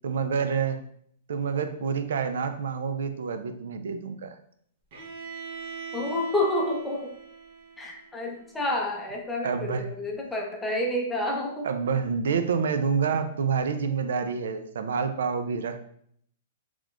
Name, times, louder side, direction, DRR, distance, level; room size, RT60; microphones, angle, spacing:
voice 1, 0.0-0.8 1.3-4.3 9.4-9.8 11.6-15.8, right 6 dB, 80° right, 9 dB, 0.4 m, -28 dB
Bowed string instrument, 4.9-8.8, right 6 dB, 45° right, 0.9 m, -42 dB
voice 2, 5.9-7.1 7.8-11.7, left 1 dB, 5° left, 0 dB, 0.5 m, -29 dB
3.9 x 3.0 x 2.3 m, 0.65 s
hypercardioid pair, 165°, 0 cm